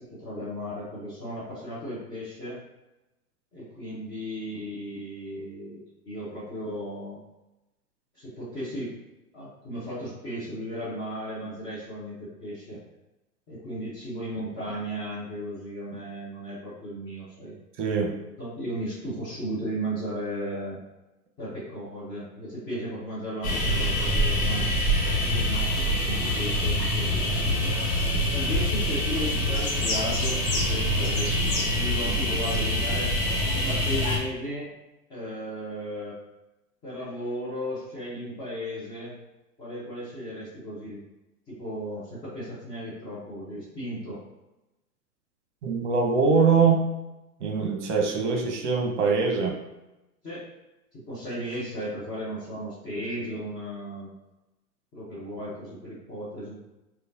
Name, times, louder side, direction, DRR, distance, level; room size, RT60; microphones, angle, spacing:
voice 1, 0.2-2.6 3.5-7.2 8.1-8.9 9.3-12.8 13.5-17.6 18.4-20.8 21.4-24.7 25.2-27.6 28.3-34.7 35.1-36.1 36.8-39.1 39.6-41.0 41.5-44.2 50.2-50.4 51.1-54.1 54.9-56.6, equal, 10° left, -11 dB, 0.4 m, -35 dB
voice 2, 17.8-18.1 45.6-46.9 47.4-49.6, right 5 dB, 45° right, 1 dB, 0.8 m, -23 dB
sound 1, 23.4-34.2, left 1 dB, 30° left, 1.2 m, -25 dB
4.8 x 2.3 x 2.6 m, 0.97 s
figure-of-eight pair, 105°, 47 cm